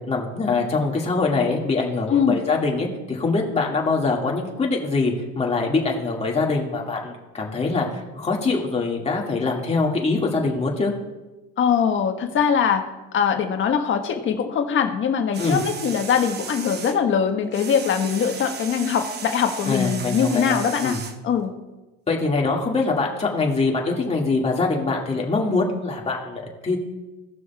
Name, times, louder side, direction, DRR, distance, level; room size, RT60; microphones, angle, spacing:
voice 1, 0.1-10.9 15.4-15.6 19.7-20.6 20.8-21.0 22.1-26.8, left 3 dB, 20° left, -1 dB, 2.1 m, -23 dB
voice 2, 2.1-2.4 11.6-12.8 13.1-20.9 21.2-21.5, left 7 dB, 40° left, 5 dB, 1.3 m, -22 dB
sound 1, 15.3-17.0 17.3-21.2, right 6 dB, 35° right, 1.0 m, -36 dB
17.5 x 6.2 x 2.3 m, 1.1 s
supercardioid pair, 100°, 30 cm